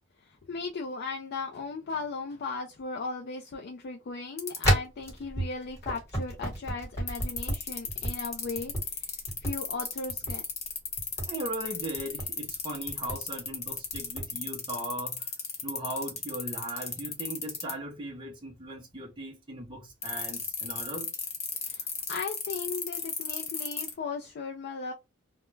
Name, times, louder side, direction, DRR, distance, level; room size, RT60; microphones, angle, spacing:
voice 1, 0.2-9.1 9.4-10.4 21.6-24.9, left 4 dB, 50° left, 0.3 m, -37 dB
sound 1, 4.4-4.7 7.1-17.7 20.0-23.9, left 6 dB, 30° left, 0.7 m, -33 dB
sound 2, 4.6-8.1 8.6-8.8 9.3-9.5 10.1-10.3 11.0-11.3 12.0-12.3 12.9-13.2 13.9-14.2, right 1 dB, 15° left, 1.1 m, -30 dB
voice 2, 11.3-21.2, right 1 dB, 25° right, 0.5 m, -38 dB
2.2 x 2.1 x 3.0 m
head